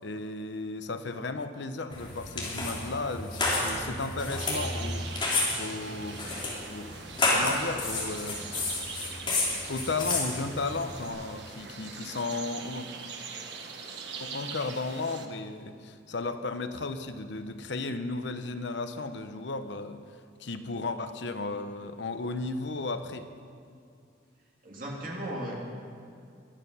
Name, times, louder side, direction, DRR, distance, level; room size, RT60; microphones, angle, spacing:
voice 1, 0.0-5.1 5.6-6.2 6.7-7.0 7.3-8.5 9.7-12.9 14.2-20.0 20.4-23.3, left 3 dB, 70° left, 9 dB, 0.8 m, -34 dB
sound 1, 1.9-11.1, left 2 dB, 25° left, 3.0 m, -31 dB
sound 2, 4.4-15.3, right 5 dB, 70° right, 1.3 m, -42 dB
voice 2, 24.6-25.5, right 1 dB, 45° right, -2 dB, 2.9 m, -36 dB
22.5 x 9.4 x 5.6 m, 2.4 s
head